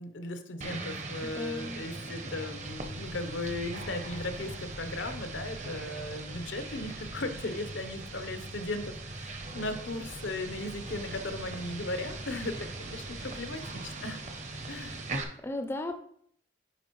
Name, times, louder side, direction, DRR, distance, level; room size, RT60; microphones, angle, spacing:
voice 1, 0.0-14.2 14.7-15.0, left 2 dB, 90° left, 8 dB, 0.8 m, -37 dB
sound 1, 0.6-15.2, right 3 dB, 40° right, 0.7 m, -40 dB
voice 2, 1.2-1.9 15.4-16.0, left 1 dB, 15° left, 6 dB, 0.4 m, -36 dB
sound 2, 2.6-13.4, equal, 65° right, 1.3 m, -49 dB
sound 3, 10.2-15.3, right 1 dB, 85° right, 1.7 m, -50 dB
10.0 x 4.3 x 3.1 m, 0.64 s
head